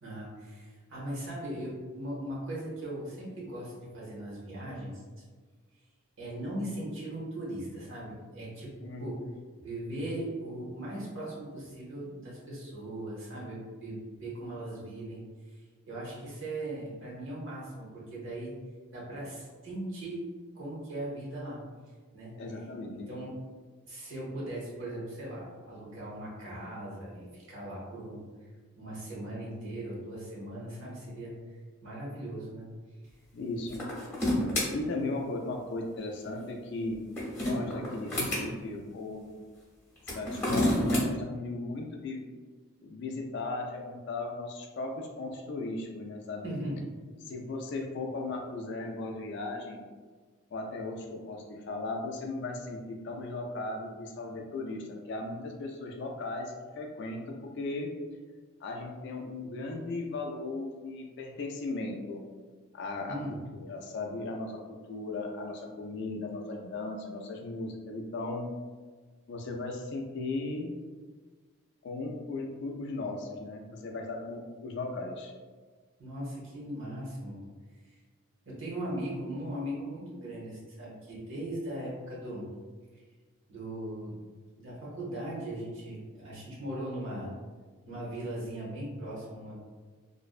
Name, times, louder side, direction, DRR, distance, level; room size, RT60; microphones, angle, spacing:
voice 1, 0.0-5.0 6.2-8.7 9.0-9.2 9.6-15.2 15.5-15.6 15.9-18.6 18.9-20.2 20.5-21.6 22.1-22.4 23.1-23.3 23.9-28.2 28.8-31.3 31.8-32.7 46.4-46.9 63.1-63.4 76.0-77.4 78.4-82.5 83.5-84.1 84.6-87.3 87.8-89.6, right 1 dB, 65° right, -5 dB, 0.8 m, -39 dB
voice 2, 22.4-23.1 33.3-33.9 34.7-37.0 37.4-39.3 40.1-42.2 42.8-46.6 47.3-49.9 50.5-57.9 58.6-62.2 62.7-63.2 63.5-68.5 69.3-70.8 71.8-75.3, left 2 dB, 55° left, 2 dB, 0.3 m, -37 dB
sound 1, 33.7-34.7 36.9-38.4 40.0-41.0, left 1 dB, 10° left, 0.6 m, -28 dB
2.5 x 2.1 x 2.3 m, 1.4 s
head